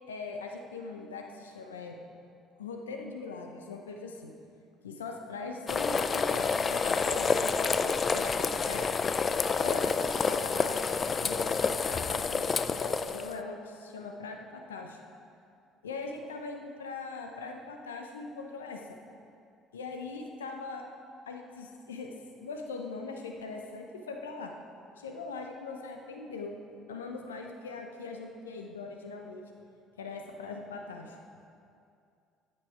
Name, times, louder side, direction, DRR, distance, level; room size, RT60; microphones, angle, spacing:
voice 1, 0.1-2.0 2.6-4.3 4.8-8.9 9.6-10.8 11.2-15.0 15.8-19.0 19.7-20.8 21.2-24.5 25.0-26.6 26.9-29.4 30.0-31.2, left 4 dB, 85° left, 3 dB, 0.8 m, -41 dB
sound 1, 5.7-13.3, left 5 dB, 35° left, 0.5 m, -28 dB
13.0 x 8.8 x 4.5 m, 2.5 s
hypercardioid pair, 55°, 0 cm